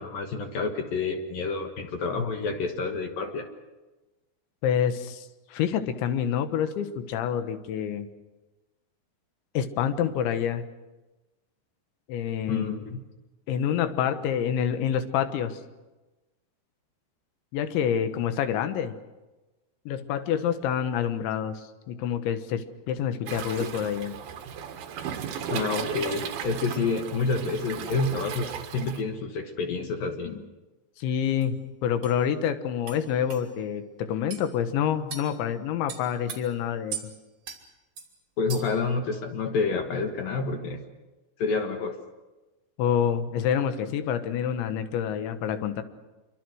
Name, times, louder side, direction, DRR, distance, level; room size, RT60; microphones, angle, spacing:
voice 1, 0.0-3.4 12.5-13.0 25.5-30.4 38.4-40.8 41.4-42.0, left 4 dB, 65° left, 5 dB, 2.7 m, -28 dB
voice 2, 4.6-8.1 9.6-10.6 12.1-12.7 13.5-15.6 17.5-19.0 19.9-24.2 31.0-37.1 42.8-45.8, left 9 dB, 85° left, 9 dB, 3.6 m, -27 dB
Waves surf, 23.3-29.0, right 8 dB, 65° right, 3.1 m, -35 dB
sound 1, 31.4-31.5 32.0-32.2 32.9-33.0 33.3-33.4 34.3-34.5 35.1-35.3 35.9-36.4 36.9-37.1 37.5-37.6 38.0-38.1 38.5-38.8, right 8 dB, 45° right, 3.6 m, -38 dB
26.5 x 24.0 x 6.4 m, 1.1 s
omnidirectional pair, 5.2 m